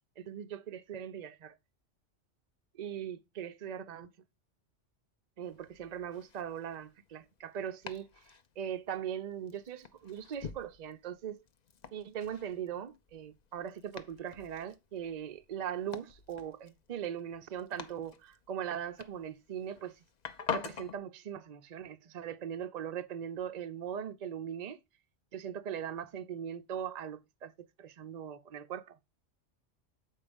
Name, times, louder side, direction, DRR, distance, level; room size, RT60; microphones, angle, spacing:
voice 1, 0.2-1.5 2.8-4.1 5.4-8.1 8.6-11.4 11.9-20.0 20.5-24.8 25.3-27.5 27.8-29.0, right 9 dB, 55° right, 0.5 m, -40 dB
Domestic sounds home sounds, 5.4-21.0, left 7 dB, 45° left, 0.6 m, -47 dB
7.3 x 4.6 x 5.1 m
omnidirectional pair, 1.3 m